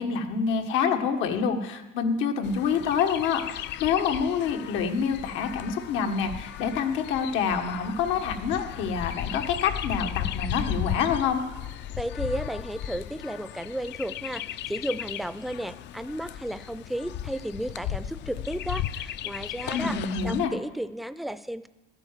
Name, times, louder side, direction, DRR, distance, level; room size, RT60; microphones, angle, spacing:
voice 1, 0.0-11.4 19.7-20.5, left 6 dB, 85° left, 5 dB, 1.5 m, -27 dB
Chirp tweet, 2.4-20.5, left 11 dB, 65° left, 0.6 m, -36 dB
voice 2, 12.0-21.7, right 1 dB, ahead, 13 dB, 0.4 m, -33 dB
12.5 x 9.9 x 7.4 m, 1.0 s
cardioid pair, 125°, 19 cm